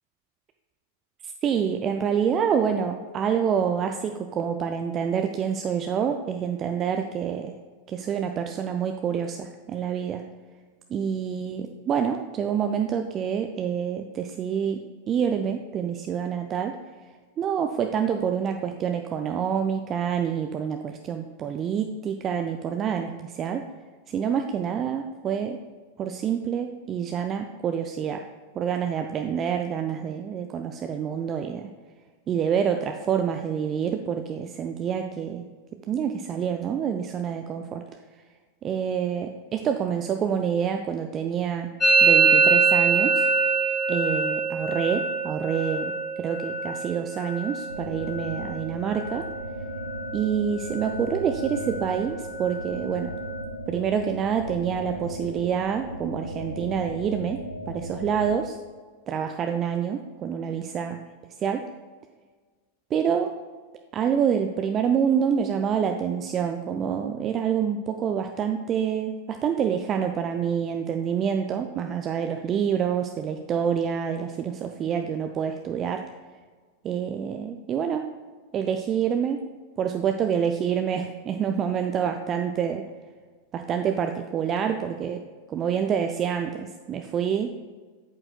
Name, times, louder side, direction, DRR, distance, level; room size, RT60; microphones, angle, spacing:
voice 1, 1.2-7.5 7.9-10.2 10.9-16.8 17.4-23.6 24.1-25.6 26.0-28.2 28.5-31.7 32.3-35.4 35.9-37.8 38.6-41.7 42.0-43.3 43.9-45.9 46.2-49.3 50.1-53.1 53.7-58.6 59.1-61.0 61.4-61.6 62.9-63.3 63.9-76.0 76.8-78.1 78.5-79.4 79.8-82.8 83.5-85.2 85.5-87.7, right 7 dB, 30° right, 5 dB, 0.4 m, -27 dB
Musical instrument, 41.8-49.5 49.7-50.3 50.5-51.1 51.4-53.4, right 4 dB, 15° left, 1.1 m, -25 dB
sound 1, 47.7-58.3, equal, 80° right, 0.6 m, -36 dB
8.6 x 7.6 x 2.2 m, 1.5 s
figure-of-eight pair, 90°, 0 cm